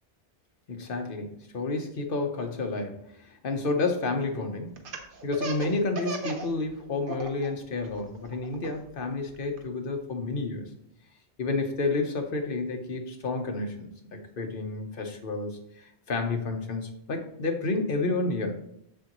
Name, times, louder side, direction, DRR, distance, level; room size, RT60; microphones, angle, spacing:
voice 1, 0.7-4.8 5.2-10.7 11.4-18.5, left 3 dB, 50° left, 4 dB, 1.1 m, -30 dB
Laughter, 4.8-6.5 6.8-7.5 7.8-9.6, right 2 dB, 50° right, 1.0 m, -36 dB
6.9 x 6.8 x 3.0 m, 0.73 s
omnidirectional pair, 1.2 m